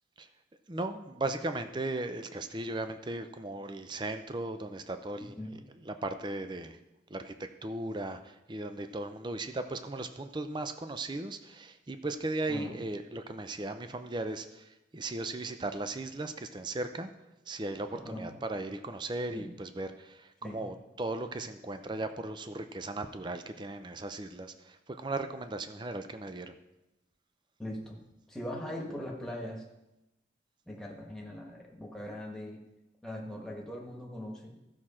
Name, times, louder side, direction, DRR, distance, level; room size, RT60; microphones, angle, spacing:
voice 1, 0.7-5.3 5.9-6.8 7.1-17.1 17.5-26.5, right 2 dB, 25° right, 8 dB, 0.5 m, -37 dB
voice 2, 5.2-5.6 12.5-12.8 17.9-18.4 19.3-19.5 20.4-20.6 27.6-28.0 28.3-29.6 30.7-32.6 33.0-34.5, left 1 dB, 5° left, -1 dB, 1.5 m, -40 dB
14.5 x 6.2 x 4.3 m, 0.94 s
head